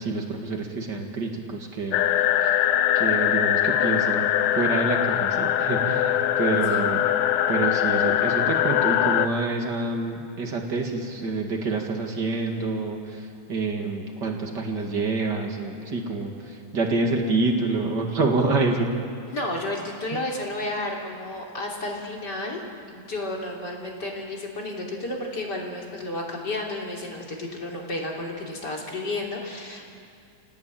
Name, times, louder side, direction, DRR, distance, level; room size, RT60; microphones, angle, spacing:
voice 1, 0.0-2.0 2.4-2.5 2.9-7.0 7.5-18.9, right 3 dB, 40° right, 2 dB, 1.7 m, -27 dB
sound 1, 1.9-9.3, left 11 dB, 85° left, 2.9 m, -22 dB
voice 2, 6.5-6.8 19.3-29.9, left 2 dB, 25° left, -1 dB, 3.1 m, -32 dB
29.0 x 18.5 x 9.0 m, 2.4 s
omnidirectional pair, 4.8 m